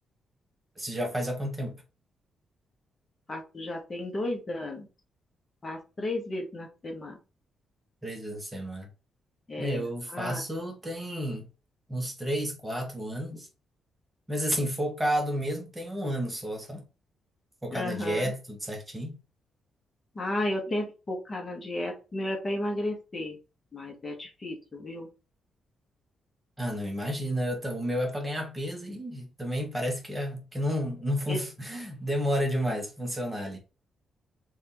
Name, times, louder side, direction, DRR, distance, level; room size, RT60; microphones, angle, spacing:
voice 1, 0.8-1.8 8.0-8.9 9.6-11.5 11.9-13.5 14.3-16.8 17.6-19.2 26.6-33.6, equal, 15° right, 1.4 m, -31 dB
voice 2, 3.3-4.9 5.6-7.2 9.5-9.8 10.1-10.4 17.7-18.3 20.1-23.4 23.7-25.1 31.3-31.4, left 1 dB, 30° left, 1.3 m, -33 dB
3.4 x 3.4 x 2.9 m
cardioid pair, 95°, 0 cm